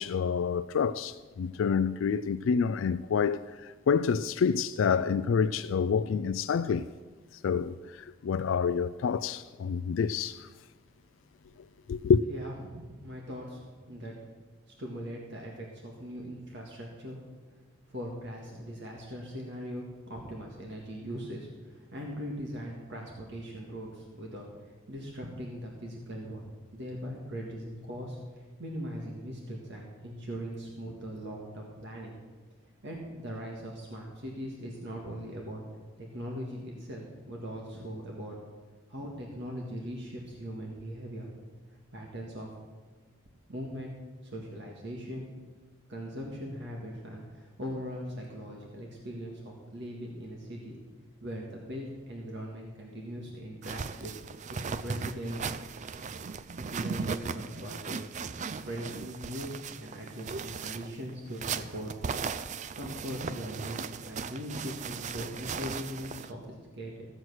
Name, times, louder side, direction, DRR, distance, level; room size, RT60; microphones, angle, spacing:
voice 1, 0.0-6.9 7.4-10.5 11.9-12.2, left 6 dB, 65° left, 0.3 m, -28 dB
voice 2, 12.3-14.1 14.7-17.2 17.9-26.5 26.7-32.2 32.8-35.6 36.0-38.4 38.9-41.3 41.9-42.5 43.5-44.0 44.2-45.3 45.9-50.8 51.2-54.1 54.6-55.5 56.7-58.0 58.6-61.9 62.7-67.1, equal, 60° right, 1.8 m, -40 dB
sound 1, 53.6-66.3, right 5 dB, 35° right, 0.4 m, -37 dB
15.0 x 7.8 x 6.2 m
head